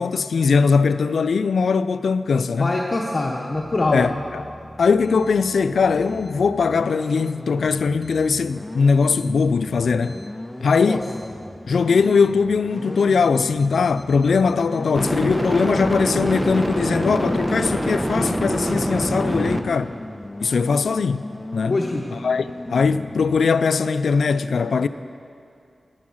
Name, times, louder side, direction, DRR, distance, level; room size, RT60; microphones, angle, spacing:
voice 1, 0.0-2.8 3.9-4.5 4.8-10.2 10.6-11.1 11.7-19.9 20.4-21.2 21.5-21.8 22.1-24.9, left 5 dB, 90° left, 0.3 m, -20 dB
voice 2, 2.6-4.0 10.7-11.0 19.6-19.7 21.7-22.0, left 2 dB, 55° left, 0.9 m, -24 dB
sound 1, 3.5-23.4, left 1 dB, 15° left, 0.6 m, -37 dB
sound 2, 10.1-10.2 15.0-19.6, equal, 10° right, 0.9 m, -24 dB
11.0 x 9.5 x 6.3 m
cardioid pair, 45°, 0 cm